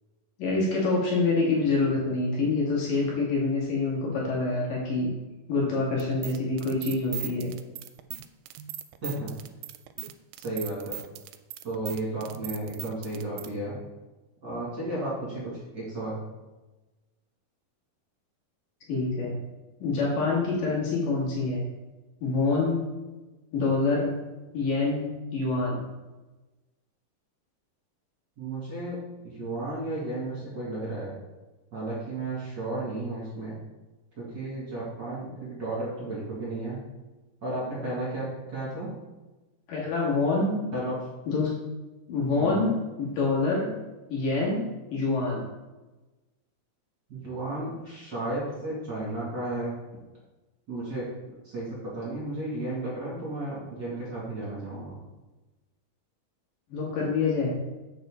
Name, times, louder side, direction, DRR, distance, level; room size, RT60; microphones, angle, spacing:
voice 1, 0.4-5.1 5.5-7.5 18.9-19.4 19.8-21.6 22.2-22.8 23.5-24.1 24.5-25.9 39.7-40.5 41.3-41.6 42.1-43.7 44.1-44.6 44.9-45.4 56.7-57.6, left 3 dB, 85° left, -5 dB, 3.6 m, -26 dB
sound 1, 6.0-13.5, right 12 dB, 85° right, 2.1 m, -39 dB
voice 2, 9.0-9.3 10.4-11.0 11.6-13.8 14.4-16.2 28.4-29.0 29.3-31.1 31.7-33.6 34.2-36.8 37.4-38.9 40.7-41.1 42.4-42.6 47.1-49.8 50.7-51.1 51.4-55.0, right 2 dB, 35° right, -7 dB, 2.7 m, -33 dB
7.9 x 6.5 x 3.8 m, 1.1 s
omnidirectional pair, 3.8 m